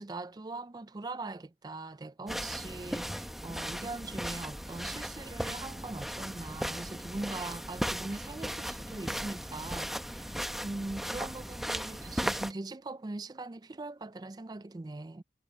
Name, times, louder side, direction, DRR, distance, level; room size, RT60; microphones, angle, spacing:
voice 1, 0.0-15.2, right 2 dB, 20° right, 0.4 m, -41 dB
sound 1, 2.3-12.5, equal, ahead, 0.8 m, -37 dB
head